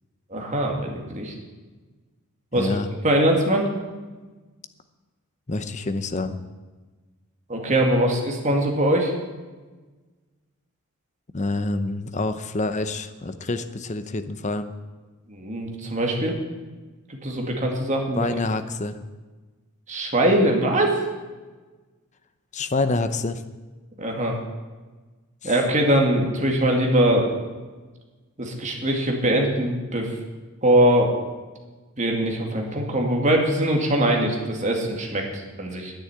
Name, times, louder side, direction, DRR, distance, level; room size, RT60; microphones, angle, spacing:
voice 1, 0.3-1.3 2.5-2.7 3.0-3.7 7.5-9.1 15.3-16.3 17.1-18.3 19.9-21.0 24.0-24.4 25.4-27.3 28.4-30.1 30.6-31.1 32.0-35.9, right 1 dB, 35° right, 1 dB, 2.2 m, -22 dB
voice 2, 2.5-2.9 5.5-6.4 11.3-14.7 18.2-19.0 22.5-23.4 25.4-25.5, left 2 dB, 30° left, 10 dB, 0.7 m, -27 dB
10.5 x 9.4 x 9.5 m, 1.3 s
head